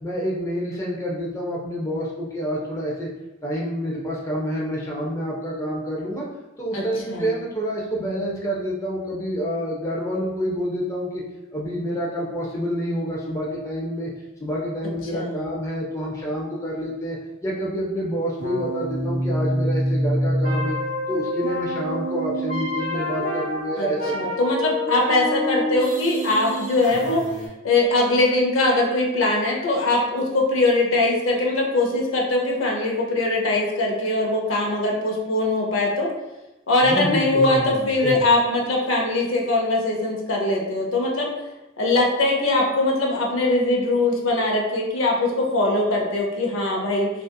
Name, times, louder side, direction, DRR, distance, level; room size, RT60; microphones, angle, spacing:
voice 1, 0.0-3.1 3.4-6.3 6.6-11.2 11.5-14.1 14.4-17.2 17.4-20.8 21.1-24.1 36.9-38.2, equal, 15° left, -4 dB, 0.4 m, -28 dB
voice 2, 6.7-7.3 15.1-15.4 23.8-23.9 24.1-27.2 27.6-36.1 36.7-41.3 41.8-47.1, left 2 dB, 75° left, -1 dB, 0.6 m, -21 dB
sound 1, 18.4-27.5, equal, 40° right, 0.8 m, -27 dB
2.6 x 2.4 x 2.2 m, 1.0 s
head